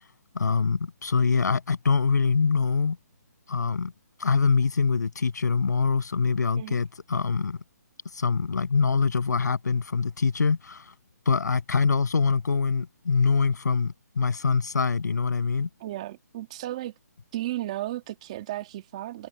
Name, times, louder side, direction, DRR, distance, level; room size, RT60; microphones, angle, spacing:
voice 1, 0.3-3.0 3.5-3.9 4.2-7.6 8.1-10.9 11.3-15.7, left 5 dB, 75° left, 7.8 m, -24 dB
voice 2, 15.8-16.9 17.3-19.3, right 15 dB, 20° right, 2.1 m, -34 dB
hypercardioid pair, 180°, 9 cm